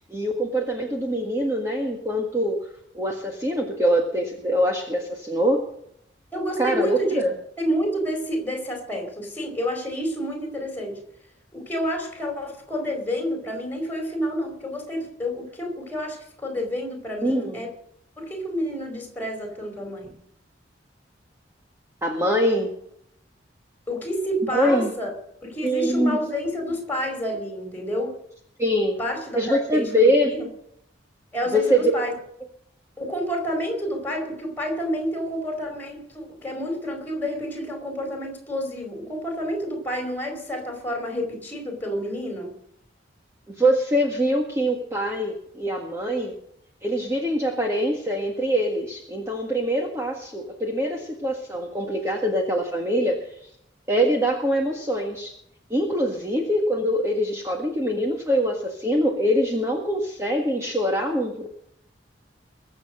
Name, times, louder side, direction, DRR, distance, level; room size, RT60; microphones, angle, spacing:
voice 1, 0.1-2.7 2.9-5.6 6.6-7.3 17.2-17.6 22.0-22.7 24.5-24.9 25.6-26.2 28.6-29.0 29.3-30.3 31.5-31.8 43.5-46.3 46.8-53.5 53.9-55.3 55.7-61.5, equal, 15° right, 0 dB, 1.7 m, -24 dB
voice 2, 6.3-7.2 7.6-11.0 11.5-17.7 18.2-20.1 23.9-25.1 25.4-28.2 29.0-30.5 31.3-32.1 33.0-42.5, equal, 10° left, 2 dB, 4.7 m, -29 dB
22.0 x 7.9 x 6.4 m, 0.71 s
head